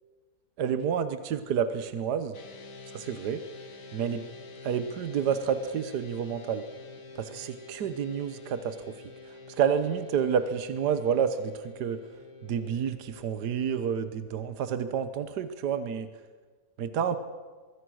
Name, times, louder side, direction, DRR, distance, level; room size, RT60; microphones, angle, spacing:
voice 1, 0.6-2.4 2.9-3.4 3.9-4.3 4.6-6.6 7.2-8.8 9.6-12.0 12.4-16.1 16.8-17.2, right 7 dB, 75° right, 11 dB, 1.5 m, -29 dB
sound 1, 2.3-14.5, left 3 dB, 80° left, 2.4 m, -48 dB
24.0 x 23.0 x 6.4 m, 1.5 s
omnidirectional pair, 1.8 m